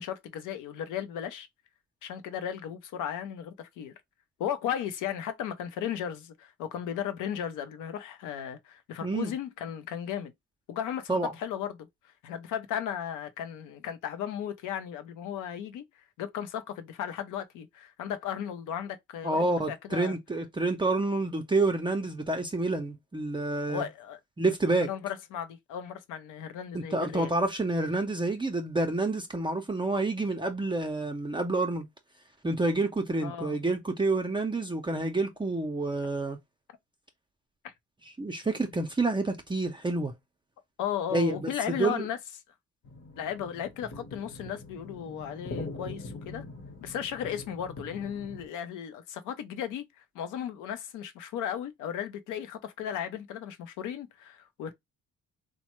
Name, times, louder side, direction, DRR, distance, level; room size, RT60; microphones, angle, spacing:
voice 1, 0.0-1.5 2.0-3.9 4.4-10.3 10.7-11.9 12.2-15.8 16.2-20.2 23.7-24.2 24.8-27.3 33.2-33.6 37.6-37.7 40.8-42.2 43.2-46.4 46.8-49.9 50.1-54.7, left 9 dB, 90° left, 0.6 m, -35 dB
voice 2, 9.0-9.3 11.1-11.3 19.2-23.9 24.4-24.9 26.7-31.8 32.4-36.4 38.2-40.1 41.1-42.0, right 2 dB, 15° right, 0.5 m, -28 dB
sound 1, 42.8-48.5, left 2 dB, 50° left, 1.0 m, -43 dB
3.1 x 2.1 x 2.9 m
cardioid pair, 90°, 30 cm